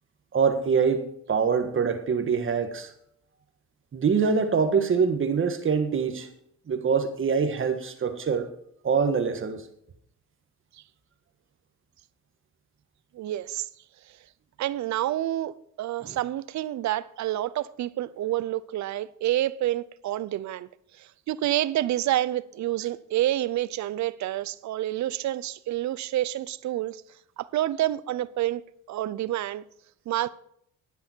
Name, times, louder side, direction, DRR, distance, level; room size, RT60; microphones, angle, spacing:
voice 1, 0.3-2.9 3.9-6.3 6.7-8.5 8.8-9.6 16.0-16.2, right 6 dB, 45° right, 1.6 m, -24 dB
voice 2, 13.1-13.7 14.6-15.5 15.8-20.7 21.0-27.0 27.4-28.6 28.9-29.6 30.1-30.3, right 14 dB, 65° right, 0.6 m, -28 dB
11.0 x 10.5 x 4.5 m
cardioid pair, 90°, 30 cm